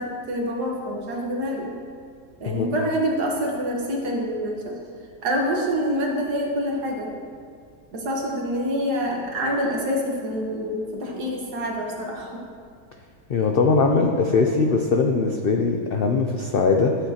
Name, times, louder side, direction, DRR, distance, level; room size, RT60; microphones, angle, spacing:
voice 1, 0.0-1.7 2.4-4.8 5.2-7.1 7.9-12.4, equal, 85° right, -1 dB, 1.8 m, -26 dB
voice 2, 13.3-17.0, left 4 dB, 80° left, 3 dB, 0.5 m, -21 dB
12.5 x 7.3 x 2.8 m, 2.3 s
omnidirectional pair, 1.7 m